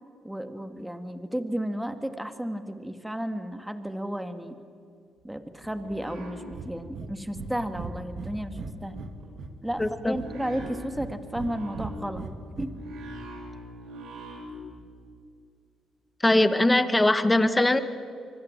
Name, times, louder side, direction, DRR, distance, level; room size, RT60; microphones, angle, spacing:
voice 1, 0.2-4.6 5.2-9.1 9.6-12.2 12.6-12.7, equal, 5° right, 8 dB, 2.0 m, -33 dB
sound 1, 5.2-7.0 7.3-14.8, equal, 85° right, 6.9 m, -43 dB
Breathing, 6.5-6.7 6.9-7.1 7.3-7.5 7.7-9.1 9.4-10.3 10.6-11.5 11.7-12.7, right 5 dB, 60° right, 2.3 m, -38 dB
voice 2, 9.8-10.1 16.2-17.8, left 1 dB, 15° left, 11 dB, 1.7 m, -21 dB
25.0 x 24.0 x 8.9 m, 2.3 s
cardioid pair, 80°, 0 cm